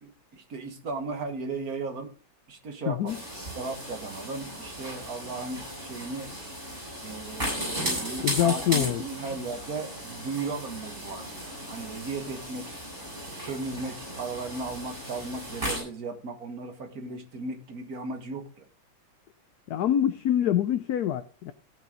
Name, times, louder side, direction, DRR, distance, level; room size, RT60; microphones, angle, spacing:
voice 1, 0.0-2.1 2.5-3.1 3.5-6.3 7.0-12.7 13.4-18.7, right 3 dB, 50° right, 6 dB, 2.1 m, -36 dB
voice 2, 2.9-3.2 8.2-9.0 19.7-21.5, left 10 dB, 65° left, 10 dB, 1.0 m, -25 dB
sound 1, 3.1-15.8, equal, 25° right, 8.2 m, -36 dB
16.5 x 6.2 x 5.2 m, 0.37 s
omnidirectional pair, 2.1 m